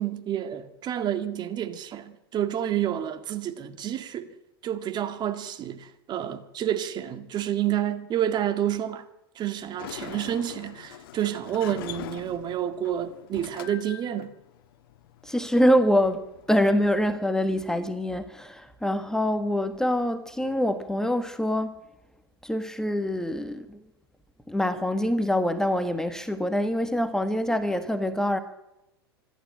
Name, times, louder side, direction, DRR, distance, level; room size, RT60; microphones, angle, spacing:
voice 1, 0.0-4.3 4.6-9.1 9.4-14.3, right 10 dB, 35° right, 1.8 m, -29 dB
Sliding door, 9.6-17.1, left 12 dB, 60° left, 1.4 m, -43 dB
voice 2, 15.2-21.7 22.4-23.8 24.5-28.4, equal, 5° left, 1.5 m, -25 dB
26.0 x 12.0 x 8.8 m
hypercardioid pair, 95°, 13 cm